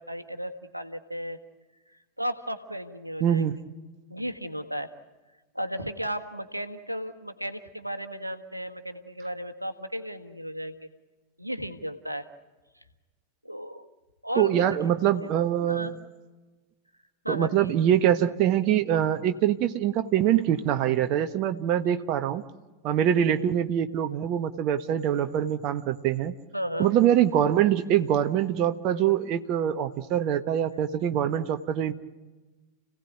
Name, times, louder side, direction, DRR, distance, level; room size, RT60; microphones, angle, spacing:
voice 1, 0.0-1.4 2.2-3.5 4.1-4.9 5.5-10.9 11.4-12.2 13.4-13.9 14.2-14.8 15.7-15.9 17.2-17.7 26.5-26.9, equal, 90° right, 7 dB, 1.4 m, -34 dB
voice 2, 3.2-3.5 14.4-16.0 17.3-22.4 22.8-26.4 26.8-31.9, right 10 dB, 40° right, 8 dB, 1.2 m, -24 dB
30.0 x 17.0 x 9.5 m, 1.2 s
figure-of-eight pair, 90°, 0 cm